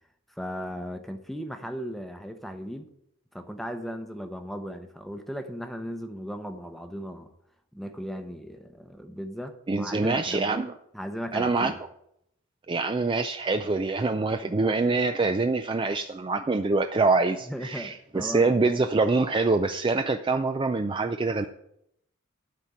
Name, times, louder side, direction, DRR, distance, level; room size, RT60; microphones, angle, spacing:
voice 1, 0.4-2.9 3.3-7.3 7.7-10.5 10.9-11.8 17.5-18.6, equal, ahead, 7 dB, 0.8 m, -37 dB
voice 2, 9.7-10.7 11.3-11.7 12.7-21.5, right 3 dB, 25° right, 7 dB, 0.4 m, -25 dB
11.5 x 4.3 x 7.5 m, 0.76 s
head